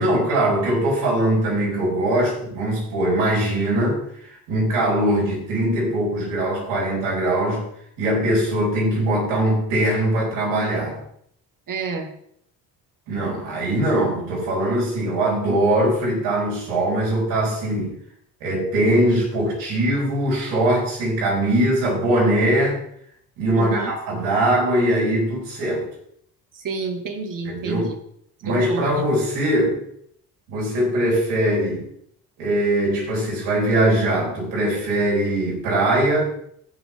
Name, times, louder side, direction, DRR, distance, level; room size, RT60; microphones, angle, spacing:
voice 1, 0.0-7.7 8.0-11.0 13.1-17.9 18.4-22.8 23.4-25.9 27.4-27.9 28.4-29.8 30.5-31.9 32.4-36.3, right 1 dB, 90° right, -2 dB, 4.3 m, -21 dB
voice 2, 11.7-12.1 15.5-15.6 23.5-23.9 26.5-28.0 28.5-29.1, right 4 dB, 50° right, 5 dB, 2.1 m, -29 dB
15.0 x 5.6 x 3.7 m, 0.69 s
supercardioid pair, 70°, 41 cm